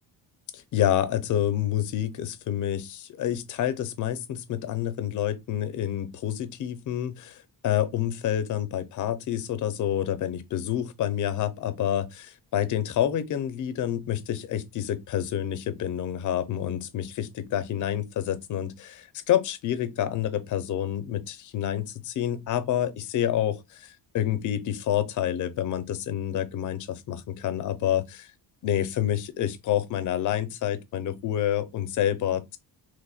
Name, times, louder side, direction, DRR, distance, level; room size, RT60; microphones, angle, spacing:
voice 1, 0.5-28.3 28.6-32.6, left 11 dB, 50° left, 0.5 m, -28 dB
3.1 x 2.1 x 4.0 m
cardioid pair, 160°, 40 cm